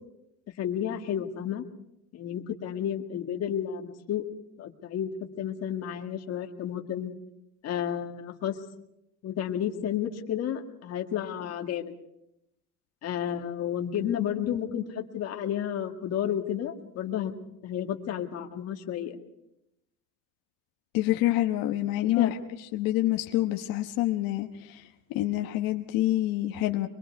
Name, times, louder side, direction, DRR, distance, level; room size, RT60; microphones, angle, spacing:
voice 1, 0.6-1.6 2.1-4.3 4.6-5.1 5.4-7.1 7.6-8.5 9.2-11.9 13.0-17.3 17.6-19.2 22.2-22.3, left 9 dB, 45° left, 3 dB, 1.9 m, -31 dB
voice 2, 20.9-22.3 22.7-24.9 25.1-26.9, left 15 dB, 75° left, 4 dB, 1.2 m, -27 dB
25.0 x 22.0 x 4.7 m, 0.82 s
cardioid pair, 170°, 35 cm